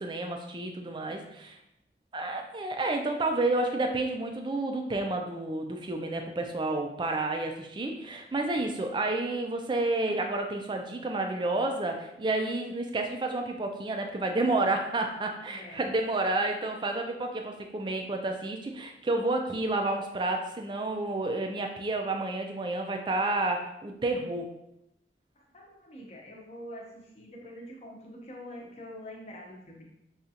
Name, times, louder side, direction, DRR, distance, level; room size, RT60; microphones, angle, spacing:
voice 1, 0.0-1.6 2.1-24.5, right 2 dB, 25° right, 4 dB, 0.4 m, -30 dB
voice 2, 15.5-15.8 25.4-29.9, left 1 dB, 35° left, -1 dB, 0.7 m, -45 dB
4.9 x 2.3 x 2.7 m, 0.82 s
head